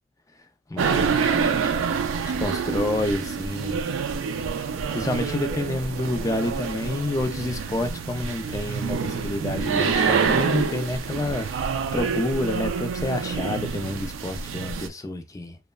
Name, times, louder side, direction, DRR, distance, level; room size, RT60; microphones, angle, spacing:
voice 1, 0.7-1.7 2.3-3.8 4.9-11.5 11.9-15.6, left 2 dB, 15° left, 0.3 m, -29 dB
sound 1, 0.8-14.9, right 5 dB, 80° right, 0.4 m, -27 dB
3.0 x 2.1 x 2.2 m
head